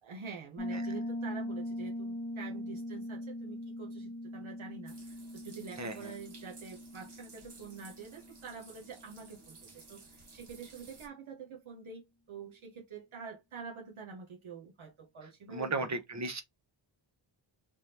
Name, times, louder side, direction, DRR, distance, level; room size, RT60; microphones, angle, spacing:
voice 1, 0.0-16.0, right 5 dB, 70° right, 1.0 m, -47 dB
Piano, 0.6-9.1, left 1 dB, 10° left, 1.0 m, -41 dB
sound 1, 4.9-11.1, right 3 dB, 55° right, 1.3 m, -56 dB
voice 2, 5.8-6.1 15.5-16.4, right 3 dB, 35° right, 0.9 m, -35 dB
3.5 x 3.4 x 2.8 m
wide cardioid pair, 110°, 50 cm